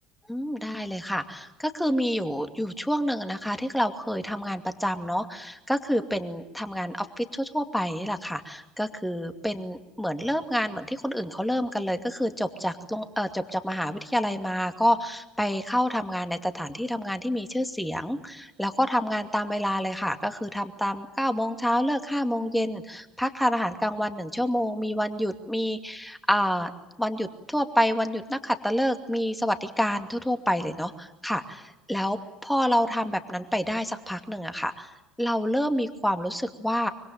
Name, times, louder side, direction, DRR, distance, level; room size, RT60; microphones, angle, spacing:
voice 1, 0.3-26.7 27.0-34.9 35.2-36.9, equal, 5° left, 8 dB, 2.4 m, -28 dB
25.5 x 24.5 x 9.1 m, 0.97 s
hypercardioid pair, 65°, 0 cm